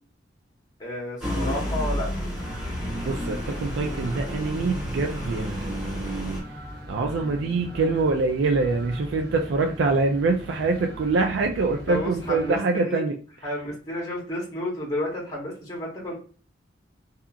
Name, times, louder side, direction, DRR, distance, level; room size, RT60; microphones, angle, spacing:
voice 1, 0.8-2.3 11.7-12.6 12.8-13.0 13.4-16.1, left 1 dB, 20° left, -3 dB, 0.8 m, -31 dB
sound 1, 1.2-6.4, equal, ahead, 1.1 m, -31 dB
sound 2, 2.2-12.6, equal, 60° right, 0.9 m, -38 dB
voice 2, 3.0-6.4 6.9-13.1, right 3 dB, 85° right, 3 dB, 0.4 m, -25 dB
2.8 x 2.4 x 2.3 m, 0.40 s
head